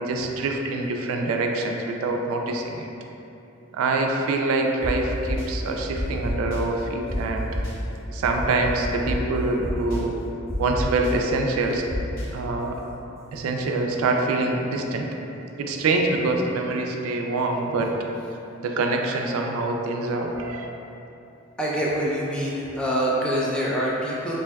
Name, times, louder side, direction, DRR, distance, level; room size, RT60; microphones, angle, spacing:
voice 1, 0.0-2.9 3.7-7.5 8.1-10.2 10.6-11.8 12.3-12.8 13.3-15.1 15.6-18.1 18.6-20.7, right 2 dB, 85° right, 5 dB, 0.3 m, -25 dB
sound 1, 4.8-4.9 5.2-5.4 5.9-6.6 7.1-7.2 7.5-7.7 8.2-9.1 9.6-10.0 10.5-11.1 11.9-12.2, equal, 45° left, 0.8 m, -28 dB
voice 2, 21.6-24.3, equal, 5° left, -6 dB, 0.3 m, -25 dB
2.6 x 2.2 x 3.3 m, 2.9 s
head